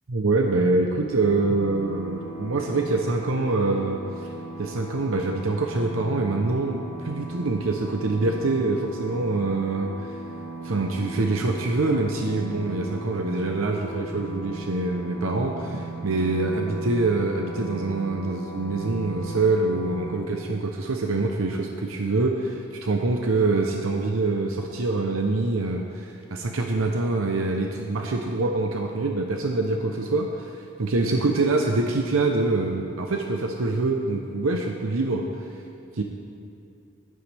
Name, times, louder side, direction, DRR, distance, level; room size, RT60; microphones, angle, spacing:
voice 1, 0.1-4.0 4.6-9.9 10.6-35.3 35.9-36.0, right 3 dB, 85° right, 2 dB, 0.8 m, -25 dB
sound 1, 1.2-20.2, right 2 dB, 40° right, 1.6 m, -38 dB
14.5 x 11.0 x 3.4 m, 2.6 s
head